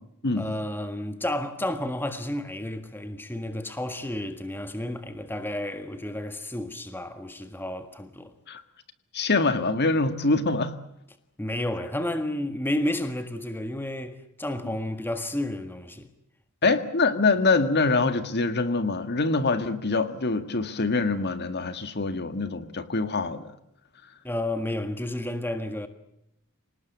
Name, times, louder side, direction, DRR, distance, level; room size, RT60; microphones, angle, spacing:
voice 1, 0.4-8.3 11.4-16.1 16.6-16.8 24.2-25.9, left 1 dB, 10° left, 1.6 m, -31 dB
voice 2, 9.1-10.7 16.6-23.5, left 3 dB, 50° left, 1.9 m, -24 dB
27.0 x 19.0 x 8.2 m
head